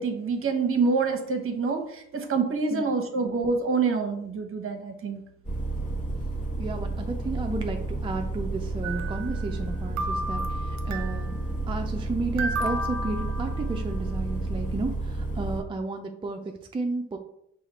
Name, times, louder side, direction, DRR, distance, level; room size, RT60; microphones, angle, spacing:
voice 1, 0.0-5.2, right 4 dB, 45° right, 4 dB, 0.9 m, -26 dB
sound 1, 5.4-15.6, right 2 dB, 25° left, 1.4 m, -31 dB
voice 2, 6.6-11.4 11.7-17.2, right 3 dB, 15° right, 3 dB, 0.4 m, -32 dB
sound 2, 8.8-9.7 10.0-11.4 12.4-14.0, right 1 dB, 65° right, 0.6 m, -33 dB
4.9 x 2.4 x 4.1 m, 0.73 s
cardioid pair, 90°, 30 cm